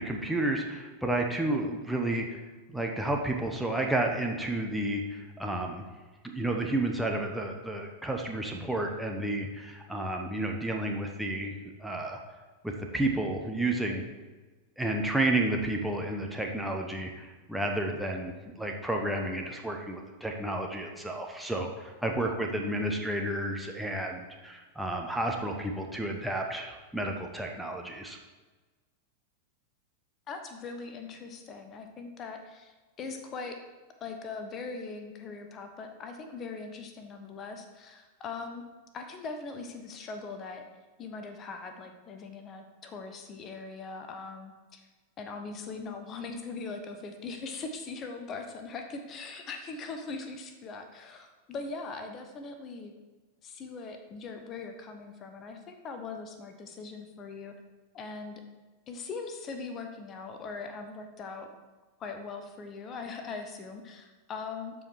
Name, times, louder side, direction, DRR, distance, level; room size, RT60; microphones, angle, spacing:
voice 1, 0.0-2.4 2.7-5.9 6.2-11.5 11.8-12.2 12.6-14.0 14.8-28.2, right 1 dB, 5° right, 1 dB, 1.0 m, -31 dB
voice 2, 30.3-33.6 34.0-38.6 38.9-40.6 41.0-44.9 45.2-52.9 53.4-57.6 57.9-58.4 58.9-61.5 62.0-64.7, left 4 dB, 30° left, 6 dB, 1.0 m, -41 dB
12.5 x 4.8 x 4.7 m, 1.3 s
figure-of-eight pair, 90°, 0 cm